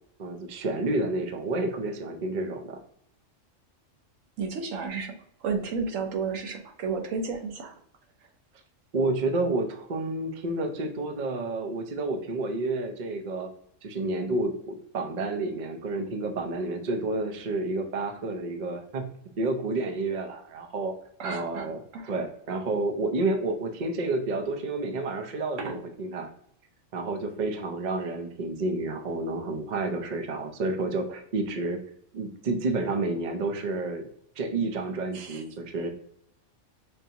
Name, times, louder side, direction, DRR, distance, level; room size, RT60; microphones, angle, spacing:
voice 1, 0.2-2.8 8.9-13.5 13.8-19.1 19.4-20.9 21.2-21.8 22.1-26.3 26.9-31.8 32.1-34.0 34.4-35.9, right 2 dB, 50° right, 5 dB, 0.6 m, -30 dB
voice 2, 4.4-5.2 5.4-7.7 21.2-21.7 21.9-22.1 25.6-25.8 35.1-35.4, right 5 dB, 90° right, 5 dB, 1.1 m, -32 dB
5.4 x 2.6 x 2.8 m, 0.68 s
omnidirectional pair, 1.3 m